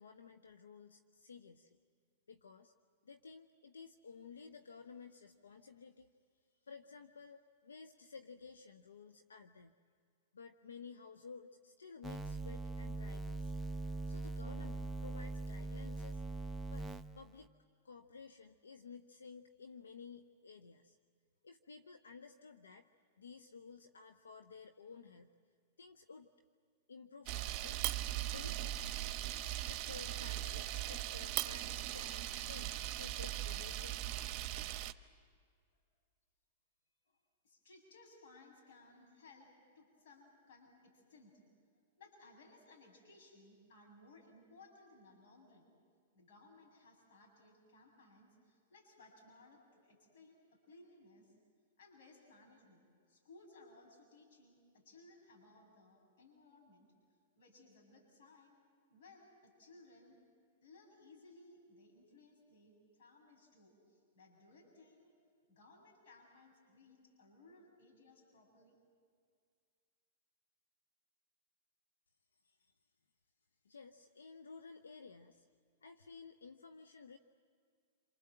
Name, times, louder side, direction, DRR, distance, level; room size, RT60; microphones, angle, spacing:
voice 1, 0.0-1.8 2.3-2.7 3.0-6.1 6.6-9.7 10.3-13.5 14.1-16.2 16.7-16.9 17.1-17.5 17.8-21.0 21.4-22.9 23.2-25.3 25.8-26.3 26.9-27.8 28.3-28.8 29.5-34.0 72.4-72.7 73.6-75.5 75.8-77.2, left 5 dB, 85° left, 9 dB, 0.9 m, -54 dB
sound 1, 12.0-17.5, right 2 dB, 5° right, 0.8 m, -42 dB
Camera, 27.3-34.9, right 13 dB, 40° right, 1.1 m, -39 dB
voice 2, 37.1-41.4 42.0-45.7 46.1-51.3 51.8-56.8 57.3-58.6 58.9-60.2 60.6-65.1 65.5-68.8, left 2 dB, 65° left, 0 dB, 7.9 m, -62 dB
28.0 x 27.0 x 7.8 m, 2.2 s
hypercardioid pair, 105°, 0 cm